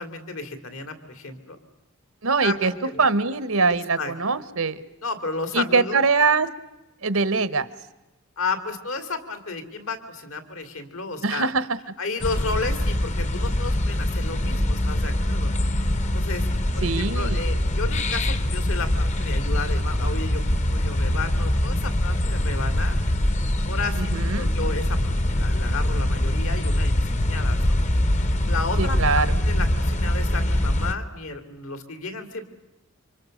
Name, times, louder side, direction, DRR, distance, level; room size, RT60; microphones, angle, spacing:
voice 1, 0.0-1.6 2.4-3.0 4.0-4.1 5.0-6.0 8.4-11.5 12.0-15.5 16.1-16.4 16.7-20.4 20.7-23.0 23.6-24.1 24.3-27.8 28.4-32.4, left 3 dB, 75° left, 8 dB, 2.7 m, -32 dB
voice 2, 2.2-2.7 3.0-4.8 5.5-6.5 7.0-7.7 11.2-11.6 16.8-17.4 24.0-24.5 28.8-29.4, right 4 dB, 80° right, 15 dB, 1.2 m, -22 dB
sound 1, 12.2-30.9, left 1 dB, 35° left, 0.8 m, -23 dB
28.5 x 25.0 x 6.5 m, 0.98 s
head